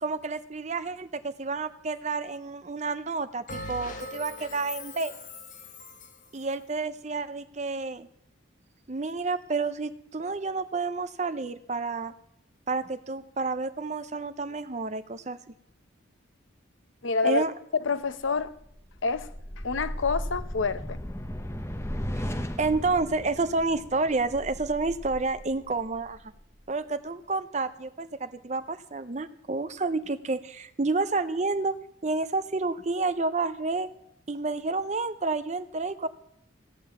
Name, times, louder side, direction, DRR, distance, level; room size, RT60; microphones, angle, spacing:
voice 1, 0.0-5.1 6.3-8.1 8.9-12.1 12.7-15.4 17.2-17.5 22.1-26.2 26.7-31.7 32.0-33.9 34.3-36.1, right 3 dB, 35° right, 0.6 m, -30 dB
Bell, 3.5-6.3, left 2 dB, 40° left, 1.1 m, -40 dB
voice 2, 17.0-17.4 17.8-18.5 19.0-19.3 19.6-21.0, left 4 dB, 75° left, 0.8 m, -27 dB
sound 1, 18.2-26.7, equal, 15° left, 0.7 m, -37 dB
16.0 x 9.3 x 7.0 m
head